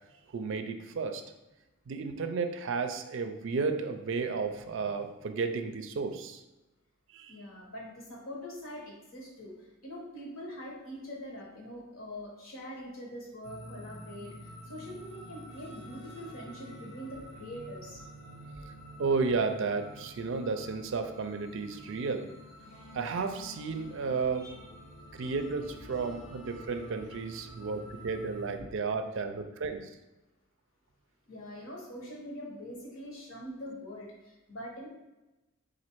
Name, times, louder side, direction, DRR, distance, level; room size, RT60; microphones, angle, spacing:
voice 1, 0.3-1.2 1.9-6.4 7.1-7.3 19.0-22.3 22.9-24.5 25.1-29.9, right 4 dB, 60° right, 8 dB, 0.4 m, -33 dB
voice 2, 7.3-18.0 24.3-24.7 25.2-25.3 28.6-28.7 31.3-34.9, equal, 75° left, -2 dB, 1.3 m, -44 dB
sound 1, 13.4-28.6, equal, 55° left, 1.1 m, -48 dB
4.1 x 2.5 x 4.5 m, 1.0 s
head